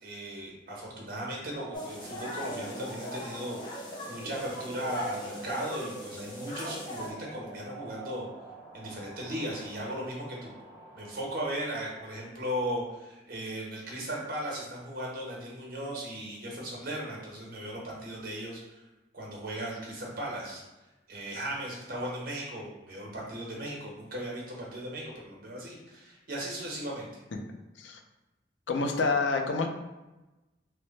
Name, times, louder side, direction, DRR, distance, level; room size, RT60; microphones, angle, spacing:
voice 1, 0.0-3.6 4.1-8.3 8.7-10.5 10.9-18.8 19.1-20.6 21.1-27.1, right 1 dB, 50° right, -3 dB, 1.0 m, -37 dB
sound 1, 1.5-12.8, right 2 dB, 15° right, 1.2 m, -46 dB
sound 2, 1.7-7.1, left 1 dB, 25° left, 0.6 m, -40 dB
voice 2, 28.7-29.7, left 3 dB, 75° left, 4 dB, 0.4 m, -28 dB
3.2 x 2.2 x 4.0 m, 1.1 s
head